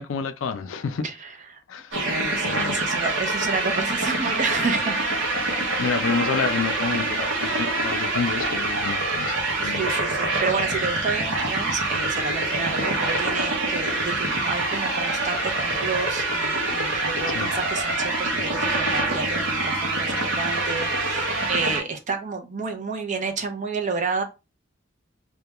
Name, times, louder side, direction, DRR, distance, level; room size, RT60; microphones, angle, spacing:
voice 1, 0.0-1.0 1.7-2.0 2.4-2.8 5.8-9.8 17.3-17.5, left 5 dB, 80° left, 0.4 m, -29 dB
voice 2, 1.0-1.6 2.0-5.2 7.4-7.8 9.6-24.2, right 4 dB, 40° right, 0.5 m, -30 dB
sound 1, 1.9-21.8, right 2 dB, 70° right, 0.7 m, -25 dB
2.2 x 2.1 x 2.8 m
head